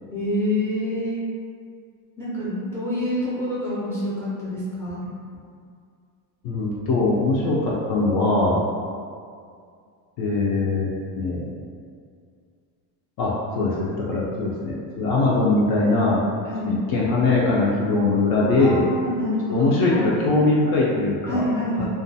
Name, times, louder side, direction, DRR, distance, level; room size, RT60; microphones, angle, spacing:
voice 1, 0.1-1.2 2.2-5.1 16.4-16.8 18.6-20.0 21.3-21.8, left 1 dB, 5° left, -9 dB, 0.4 m, -26 dB
voice 2, 6.4-8.6 10.2-10.9 11.2-11.5 13.2-16.2 16.7-18.8 19.5-21.4 21.8-21.9, left 2 dB, 60° left, -5 dB, 0.5 m, -21 dB
2.4 x 2.2 x 2.6 m, 2.2 s
cardioid pair, 135°, 44 cm